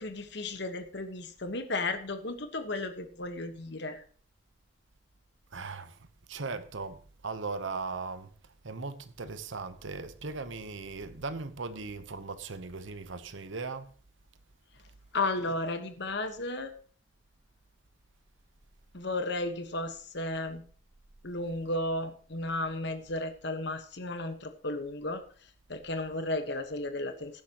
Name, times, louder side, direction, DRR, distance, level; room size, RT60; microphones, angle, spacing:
voice 1, 0.0-4.0 15.1-16.7 18.9-20.6 21.2-25.2 25.7-27.4, left 2 dB, 60° left, 1.3 m, -34 dB
voice 2, 5.5-8.3 8.6-13.9, right 4 dB, 70° right, 1.0 m, -38 dB
17.0 x 10.5 x 3.0 m
head